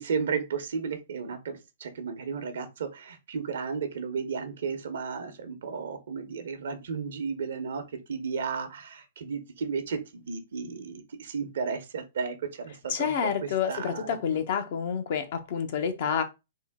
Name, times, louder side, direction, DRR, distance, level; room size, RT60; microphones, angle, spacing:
voice 1, 0.1-7.8 8.1-14.2, right 5 dB, 70° right, 0.8 m, -34 dB
voice 2, 12.9-16.2, left 7 dB, 55° left, 0.7 m, -28 dB
3.7 x 2.1 x 3.5 m
hypercardioid pair, 135°, 0 cm